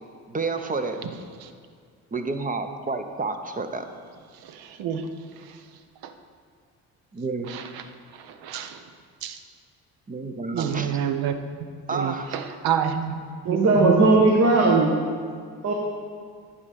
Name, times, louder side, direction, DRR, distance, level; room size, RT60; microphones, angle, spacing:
voice 1, 0.3-1.0 2.1-3.9 7.1-7.5 10.1-10.9 11.9-12.3, right 3 dB, 20° right, 7 dB, 0.6 m, -29 dB
voice 2, 4.4-5.1 6.0-6.1 7.5-7.8 8.2-8.8 9.2-9.4 10.5-11.3 11.6-13.2 13.4-14.0, right 8 dB, 75° right, 9 dB, 0.7 m, -28 dB
voice 3, 13.4-14.9 15.6-15.7, right 3 dB, 45° right, -1 dB, 1.1 m, -18 dB
9.6 x 3.8 x 5.8 m, 2.1 s
supercardioid pair, 65°, 37 cm